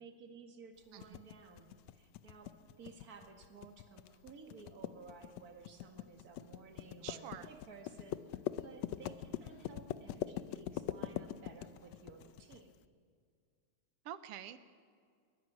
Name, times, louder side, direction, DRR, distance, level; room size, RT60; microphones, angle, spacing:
voice 1, 0.0-12.7, right 4 dB, 35° right, 4 dB, 2.0 m, -55 dB
sound 1, 1.0-12.6, left 13 dB, 75° left, 1.8 m, -42 dB
voice 2, 7.0-7.5 14.0-14.6, right 10 dB, 65° right, 12 dB, 1.6 m, -47 dB
22.0 x 20.0 x 6.2 m, 2.2 s
omnidirectional pair, 3.3 m